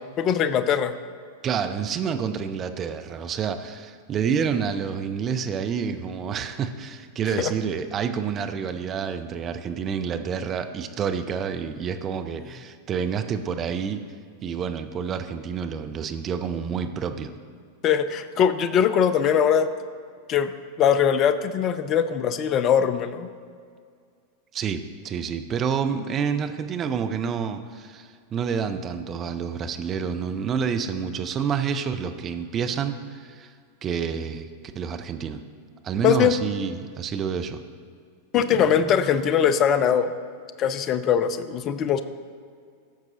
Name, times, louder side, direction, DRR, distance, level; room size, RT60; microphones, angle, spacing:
voice 1, 0.2-0.9 7.4-7.5 17.8-19.7 20.3-20.5 20.8-23.3 36.0-36.3 38.3-40.1 40.6-42.0, left 8 dB, 35° left, 12 dB, 0.5 m, -21 dB
voice 2, 1.4-14.0 14.4-17.3 24.5-33.5 33.8-34.5 34.7-35.4 35.8-37.6, right 7 dB, 30° right, 7 dB, 0.5 m, -28 dB
15.0 x 6.0 x 2.9 m, 2.1 s
figure-of-eight pair, 90°, 0 cm